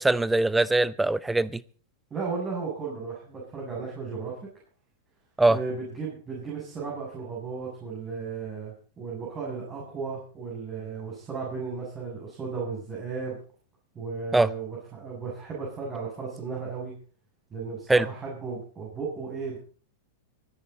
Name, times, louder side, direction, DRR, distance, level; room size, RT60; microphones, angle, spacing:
voice 1, 0.0-1.6 5.4-5.6 14.3-14.5 17.9-18.1, right 2 dB, 5° right, 0.6 m, -22 dB
voice 2, 2.1-4.4 5.5-13.4 13.9-17.0 17.5-19.6, right 5 dB, 25° right, 7.5 m, -35 dB
24.0 x 10.5 x 4.1 m
hypercardioid pair, 105°, 0 cm